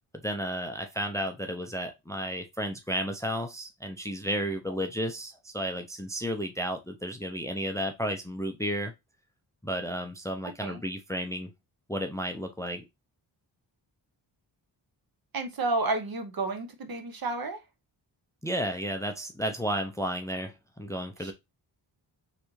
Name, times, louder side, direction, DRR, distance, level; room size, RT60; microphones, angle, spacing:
voice 1, 0.2-8.9 9.6-11.5 11.9-12.8 18.4-21.3, equal, 5° left, 0.5 m, -32 dB
voice 2, 10.4-10.8 15.3-17.6 21.2-21.3, right 3 dB, 50° right, 0.9 m, -31 dB
3.3 x 2.5 x 3.1 m
cardioid pair, 55°, 46 cm